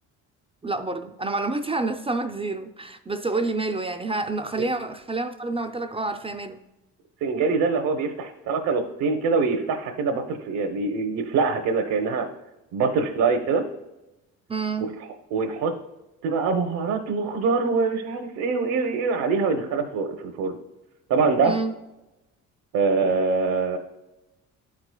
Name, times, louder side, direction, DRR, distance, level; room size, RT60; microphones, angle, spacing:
voice 1, 0.6-6.6 14.5-14.9 21.4-21.7, right 3 dB, 15° right, 0.4 m, -28 dB
voice 2, 7.2-12.3 12.7-13.7 14.8-14.9 15.3-15.7 16.2-20.6 21.1-21.5 22.7-23.8, right 4 dB, 70° right, 0.9 m, -24 dB
11.5 x 4.8 x 2.2 m
supercardioid pair, 75°, 34 cm